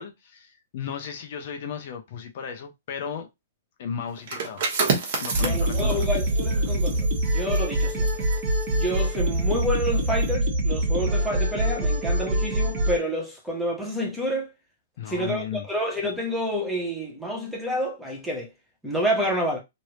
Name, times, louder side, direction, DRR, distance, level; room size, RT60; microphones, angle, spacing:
voice 1, 0.0-3.3 3.8-4.7 5.2-6.1 15.0-15.7, left 7 dB, 45° left, 0.6 m, -35 dB
sound 1, 4.2-9.7 10.0-10.3, right 5 dB, 45° right, 1.1 m, -31 dB
voice 2, 5.3-8.1 8.7-14.5 15.1-18.5 18.8-19.6, equal, 5° right, 0.8 m, -28 dB
sound 2, 5.3-13.0, right 1 dB, 25° right, 1.2 m, -24 dB
3.1 x 2.6 x 3.0 m
hypercardioid pair, 165°, 0 cm